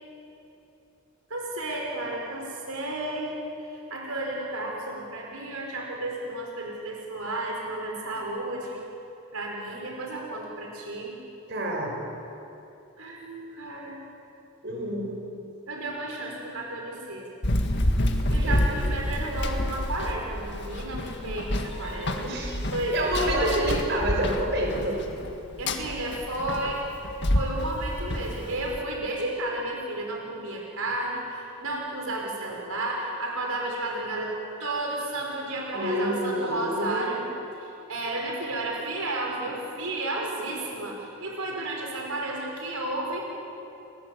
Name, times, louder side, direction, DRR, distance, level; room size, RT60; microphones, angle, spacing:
voice 1, 1.3-3.3 3.7-8.8 9.3-11.2 13.0-14.0 15.7-17.3 18.3-22.3 22.7-23.6 25.6-26.8 27.3-37.3 37.6-43.4, right 2 dB, 85° right, 0 dB, 4.9 m, -32 dB
voice 2, 11.5-12.0 14.6-15.1 18.4-18.8 22.2-22.6 22.9-25.0 35.7-37.1, right 1 dB, 55° right, 0 dB, 5.9 m, -28 dB
Run, 17.4-28.8, left 1 dB, 55° left, 1.9 m, -28 dB
29.5 x 21.0 x 8.5 m, 2.9 s
head